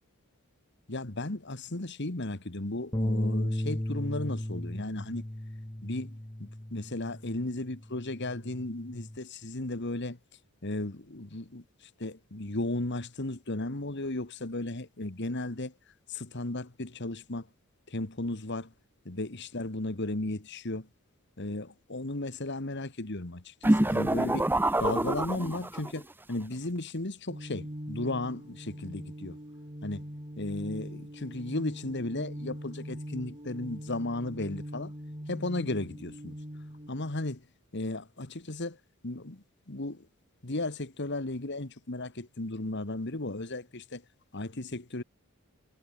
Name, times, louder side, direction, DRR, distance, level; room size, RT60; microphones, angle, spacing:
voice 1, 0.9-5.2 5.8-10.2 10.6-11.6 12.0-15.7 16.1-17.5 17.9-18.7 19.1-20.9 21.4-24.5 24.8-29.4 29.8-30.0 30.4-34.9 35.3-36.4 36.9-37.4 37.7-38.8 39.0-40.1 40.4-44.0 44.3-45.0, left 2 dB, 50° left, 1.7 m, -35 dB
Bass guitar, 2.9-7.4 7.8-9.2, left 1 dB, 15° left, 1.1 m, -35 dB
sound 1, 23.6-26.0, right 1 dB, 10° right, 0.7 m, -26 dB
sound 2, 27.3-36.9, equal, 30° right, 6.7 m, -42 dB
head